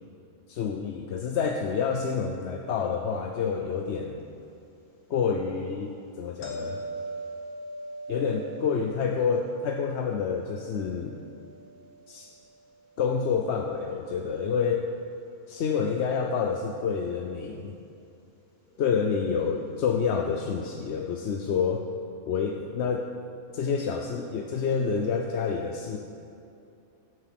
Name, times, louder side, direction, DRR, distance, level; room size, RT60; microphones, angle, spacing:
voice 1, 0.5-4.2 5.1-6.8 8.1-11.1 12.1-12.3 13.0-14.9 15.5-17.8 18.8-21.9 22.3-23.1 23.5-26.0, left 6 dB, 60° left, 3 dB, 0.9 m, -28 dB
sound 1, 6.4-13.4 18.7-18.8, right 2 dB, 85° left, 2.7 m, -41 dB
16.0 x 7.8 x 5.8 m, 2.6 s
omnidirectional pair, 1.5 m